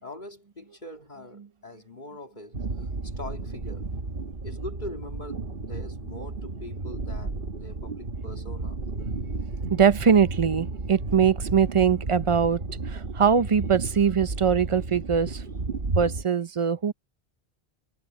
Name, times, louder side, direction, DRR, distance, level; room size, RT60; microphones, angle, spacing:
voice 1, 0.0-3.9 4.4-8.8, left 1 dB, 45° left, 2.4 m, -42 dB
sound 1, 2.5-16.2, right 3 dB, 55° right, 1.8 m, -33 dB
voice 2, 9.7-12.6 12.9-15.4 16.0-16.9, right 7 dB, 35° right, 0.6 m, -22 dB
omnidirectional pair, 1.1 m